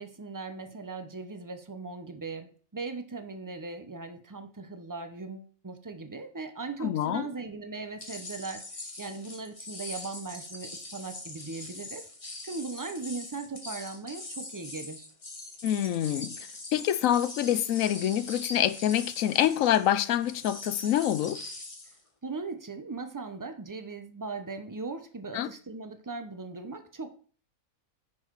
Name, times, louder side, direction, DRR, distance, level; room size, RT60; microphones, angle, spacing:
voice 1, 0.0-8.6 9.0-12.0 12.4-15.1 22.2-27.2, right 3 dB, 20° right, 0.5 m, -39 dB
voice 2, 6.8-7.3 15.6-16.3 16.7-21.4 25.3-25.5, left 11 dB, 75° left, 1.0 m, -26 dB
sound 1, 8.0-22.0, left 2 dB, 25° left, 1.3 m, -42 dB
9.5 x 4.7 x 4.6 m
omnidirectional pair, 1.5 m